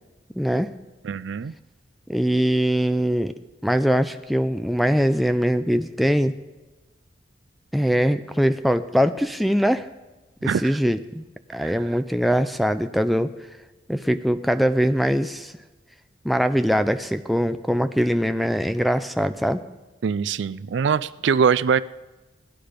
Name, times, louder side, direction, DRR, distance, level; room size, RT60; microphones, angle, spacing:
voice 1, 0.4-0.7 2.1-3.3 3.6-6.3 7.7-9.9 10.4-11.2 11.5-13.3 13.9-15.5 16.2-19.6, equal, ahead, 9 dB, 0.4 m, -22 dB
voice 2, 1.0-1.5 10.4-10.8 11.6-11.7 20.0-21.8, right 6 dB, 70° right, 17 dB, 0.4 m, -22 dB
17.5 x 10.0 x 5.1 m, 1.1 s
head